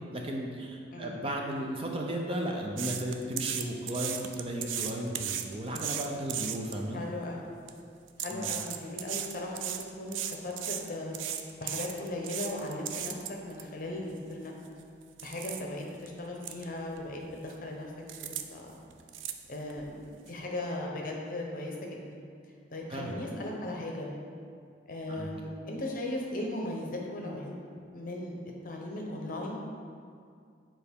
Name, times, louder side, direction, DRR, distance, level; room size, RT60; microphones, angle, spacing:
voice 1, 0.1-7.0 8.3-8.5 22.9-23.2 25.1-25.3, right 1 dB, 30° right, 0 dB, 0.5 m, -35 dB
voice 2, 0.9-1.2 6.9-7.5 8.2-11.1 11.6-14.5 15.2-17.9 18.2-18.7 19.5-22.2 22.7-24.1 24.9-27.6 27.9-29.6, left 1 dB, 45° left, 0 dB, 0.8 m, -37 dB
sound 1, 2.8-6.8 7.5-7.7 8.1-13.6 14.1-14.2 14.7-14.8 15.2-15.6 16.1-16.2 16.4-16.6 16.9-17.5 18.1-18.4 18.7-19.8 20.3-20.4, right 10 dB, 85° right, 0.4 m, -36 dB
6.9 x 4.4 x 3.6 m, 2.3 s
head